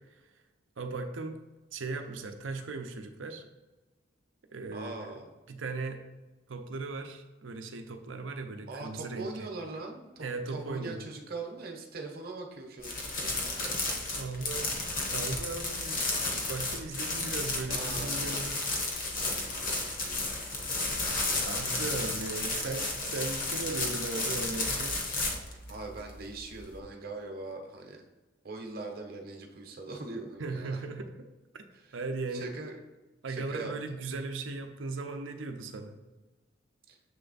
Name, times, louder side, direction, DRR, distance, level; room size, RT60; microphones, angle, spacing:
voice 1, 0.8-1.4 1.7-3.4 4.5-5.1 5.5-6.1 6.5-9.5 10.2-11.1 14.1-14.7 15.1-16.0 16.5-18.6 21.5-25.0 30.4-31.1 31.5-31.6 31.9-32.5 33.2-36.0, right 3 dB, 85° right, 6 dB, 0.7 m, -37 dB
voice 2, 4.7-5.2 8.7-13.9 17.7-18.3 19.2-21.2 25.7-28.0 28.4-30.9 31.7-32.0 32.3-32.7 33.3-33.7 34.0-34.1 36.9-37.0, right 3 dB, 50° right, 2 dB, 0.9 m, -42 dB
sound 1, 12.8-26.8, left 2 dB, 50° left, 1.0 m, -33 dB
7.1 x 3.4 x 4.0 m, 1.1 s
head